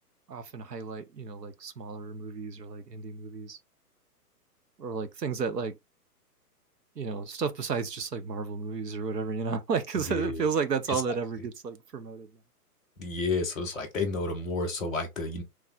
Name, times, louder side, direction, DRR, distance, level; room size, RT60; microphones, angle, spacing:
voice 1, 0.3-3.6 4.8-5.8 7.0-12.3, right 5 dB, 85° right, 0.9 m, -32 dB
voice 2, 10.1-10.4 10.9-11.0 13.0-15.4, left 3 dB, ahead, 0.4 m, -31 dB
3.5 x 3.2 x 3.6 m
hypercardioid pair, 130°, 48 cm